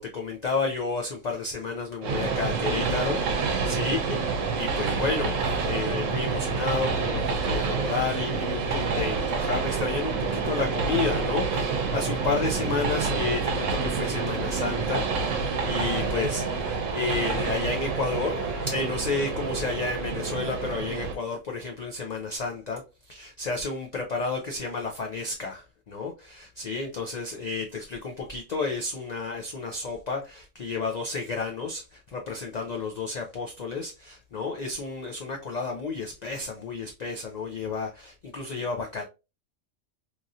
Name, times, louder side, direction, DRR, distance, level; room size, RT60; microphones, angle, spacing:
voice 1, 0.0-18.4 18.7-22.8 23.1-39.0, left 4 dB, 85° left, 0.3 m, -31 dB
Train, 2.0-21.2, right 5 dB, 75° right, 0.9 m, -28 dB
sound 1, 14.7-20.8, left 3 dB, 40° left, 1.0 m, -44 dB
2.9 x 2.6 x 2.4 m
omnidirectional pair, 1.3 m